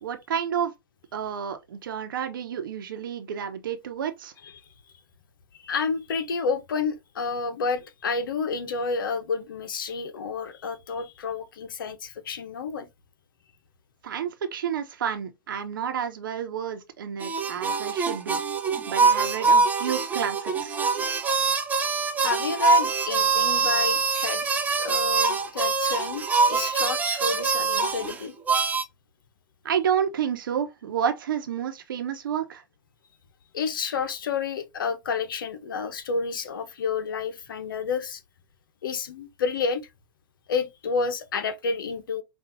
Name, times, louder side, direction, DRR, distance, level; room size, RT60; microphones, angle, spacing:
voice 1, 0.0-0.7 1.1-4.3 14.0-18.4 18.9-20.8 29.6-32.6, right 8 dB, 70° right, 1.0 m, -30 dB
voice 2, 5.6-12.9 22.2-24.5 24.7-28.3 33.5-38.2 38.8-39.9 40.5-42.2, left 5 dB, 70° left, 1.0 m, -30 dB
sound 1, 17.2-28.8, right 4 dB, 15° right, 0.8 m, -24 dB
5.5 x 2.6 x 2.7 m
hypercardioid pair, 110°, 11 cm